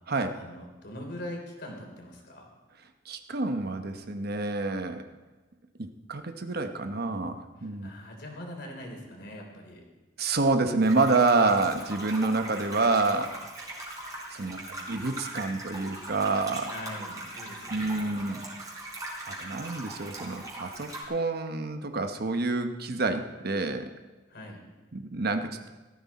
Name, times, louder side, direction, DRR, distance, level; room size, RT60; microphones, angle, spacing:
voice 1, 0.3-2.5 7.8-9.8 14.4-14.9 16.7-18.2 24.3-24.6, left 1 dB, 60° left, 1 dB, 3.4 m, -42 dB
voice 2, 3.1-5.0 5.8-7.9 10.2-13.4 14.3-14.6 14.9-16.7 17.7-18.5 19.2-23.9 24.9-25.7, right 3 dB, 55° right, 7 dB, 1.0 m, -28 dB
sound 1, 10.8-21.0, right 1 dB, 20° right, 4.0 m, -40 dB
17.5 x 13.5 x 4.2 m, 1.2 s
head